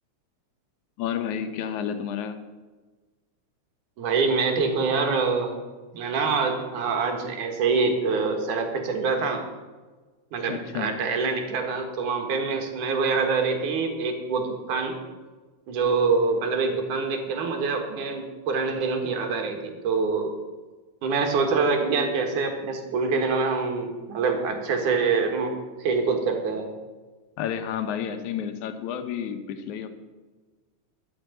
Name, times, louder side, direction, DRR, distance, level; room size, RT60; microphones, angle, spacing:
voice 1, 1.0-2.4 10.5-10.9 27.4-29.9, left 8 dB, 75° left, 8 dB, 2.4 m, -30 dB
voice 2, 4.0-5.5 5.9-9.4 10.3-15.0 15.7-20.3 21.0-26.7, right 4 dB, 85° right, 4 dB, 3.2 m, -25 dB
13.0 x 6.5 x 9.3 m, 1.3 s
omnidirectional pair, 3.4 m